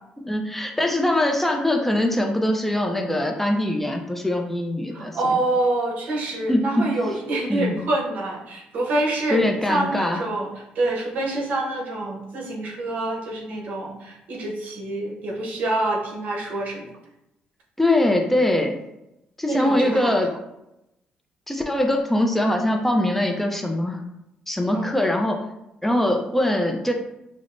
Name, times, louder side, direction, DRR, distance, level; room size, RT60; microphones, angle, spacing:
voice 1, 0.2-5.4 6.5-6.9 7.5-7.8 9.3-10.2 17.8-18.8 19.4-20.3 21.5-24.0 24.5-25.4 25.8-26.9, left 1 dB, 5° left, 2 dB, 0.4 m, -22 dB
voice 2, 4.9-9.4 9.7-10.5 10.7-16.9 19.4-20.2 24.7-24.9, right 2 dB, 70° right, -1 dB, 0.9 m, -26 dB
5.0 x 2.0 x 2.5 m, 0.88 s
cardioid pair, 100°, 3 cm